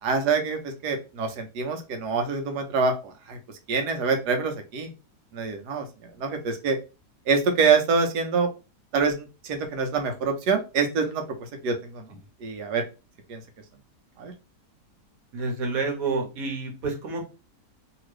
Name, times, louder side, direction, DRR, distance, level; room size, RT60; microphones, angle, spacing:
voice 1, 0.0-3.4 3.7-4.9 5.3-5.9 6.2-6.8 7.3-8.5 8.9-12.1 12.4-12.8 13.3-13.4 14.2-14.3, right 5 dB, 85° right, 5 dB, 1.3 m, -25 dB
voice 2, 15.3-17.2, right 3 dB, 60° right, 2 dB, 1.4 m, -29 dB
2.9 x 2.8 x 3.2 m, 0.29 s
omnidirectional pair, 1.7 m